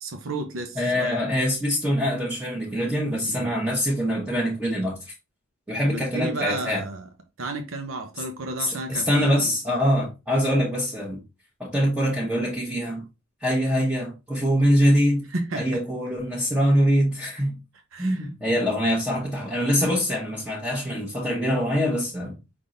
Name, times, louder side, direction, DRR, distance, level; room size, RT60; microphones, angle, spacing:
voice 1, 0.0-1.2 3.2-3.5 5.9-7.1 7.4-9.6 15.3-15.8 17.9-18.3, right 2 dB, 75° right, 0.8 m, -32 dB
voice 2, 0.8-5.1 5.7-6.8 8.6-11.2 11.6-13.0 13.4-15.3 15.5-17.6 18.0-22.4, equal, 5° right, 1.0 m, -24 dB
5.1 x 3.5 x 2.6 m
head